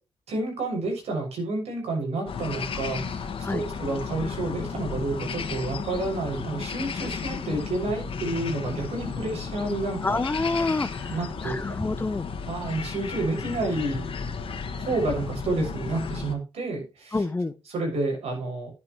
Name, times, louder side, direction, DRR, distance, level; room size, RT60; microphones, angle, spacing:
voice 1, 0.3-10.2 11.1-11.7 12.5-14.1 14.7-17.2 17.7-18.7, right 2 dB, 85° right, 7.0 m, -30 dB
sound 1, 2.3-16.3, left 5 dB, 60° left, 2.0 m, -34 dB
voice 2, 10.0-11.2 11.4-12.3 17.1-17.5, left 3 dB, 20° left, 0.8 m, -27 dB
11.0 x 11.0 x 3.3 m
cardioid pair, 95°, 10 cm